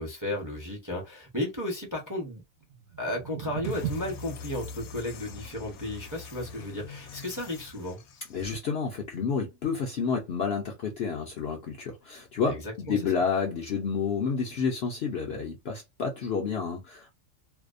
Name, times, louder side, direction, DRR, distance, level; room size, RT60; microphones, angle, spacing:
voice 1, 0.0-2.5 3.0-8.0 12.4-13.0, left 1 dB, 20° right, 0.6 m, -34 dB
sound 1, 2.6-8.8, right 8 dB, 80° right, 1.1 m, -41 dB
sound 2, 3.6-8.4, left 5 dB, 85° left, 1.0 m, -43 dB
voice 2, 8.3-17.1, left 5 dB, 60° left, 0.7 m, -30 dB
2.7 x 2.0 x 2.4 m
omnidirectional pair, 1.4 m